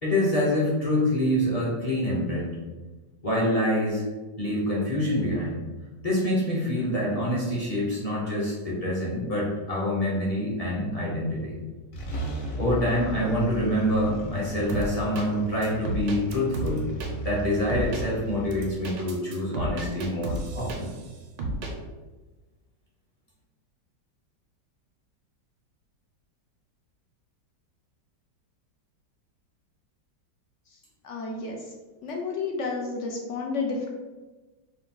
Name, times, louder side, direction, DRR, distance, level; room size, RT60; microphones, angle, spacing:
voice 1, 0.0-2.5 3.2-4.0 4.4-5.6 6.0-11.6 12.6-16.9 17.2-20.9, left 1 dB, 30° left, -6 dB, 0.8 m, -26 dB
sound 1, 11.6-11.7 11.9-18.7, right 2 dB, 55° left, 1.1 m, -35 dB
sound 2, 14.7-15.3 15.6-17.1 17.7-18.0 18.5-21.1 21.4-21.7, right 2 dB, 75° right, 1.4 m, -32 dB
voice 2, 31.0-31.6 32.0-33.9, left 4 dB, 70° left, 0 dB, 0.7 m, -31 dB
4.6 x 2.6 x 3.7 m, 1.2 s
omnidirectional pair, 2.0 m